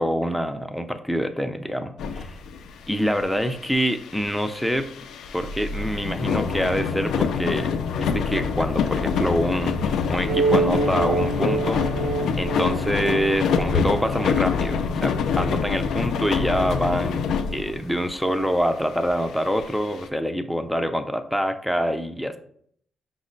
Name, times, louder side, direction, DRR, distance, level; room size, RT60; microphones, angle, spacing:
voice 1, 0.0-2.4 2.9-4.9 5.3-7.7 8.0-12.1 12.4-17.2 17.5-22.4, equal, ahead, 7 dB, 0.4 m, -26 dB
sound 1, 2.0-2.8 3.1-18.1 18.6-18.7 18.9-20.1, left 6 dB, 80° left, 0.3 m, -26 dB
sound 2, 10.3-15.2, right 3 dB, 55° right, 0.6 m, -27 dB
5.2 x 2.1 x 3.8 m, 0.63 s
cardioid pair, 100°, 0 cm